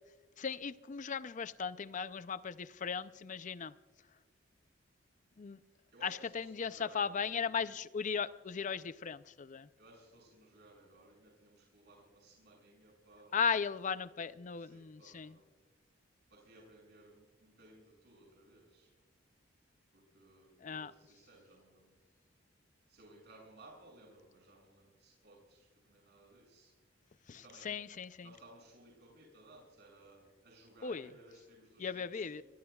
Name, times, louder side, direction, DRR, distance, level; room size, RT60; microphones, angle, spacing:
voice 1, 0.4-3.7 5.4-5.6 6.0-9.7 13.3-15.4 20.6-20.9 27.3-28.3 30.8-31.1 31.8-32.4, left 6 dB, 40° left, 0.5 m, -37 dB
voice 2, 5.9-7.8 9.8-13.4 14.6-15.5 16.3-18.9 19.9-22.0 22.9-26.7 27.3-27.8 28.2-32.4, right 2 dB, 60° right, 6.9 m, -60 dB
27.5 x 22.0 x 2.3 m
head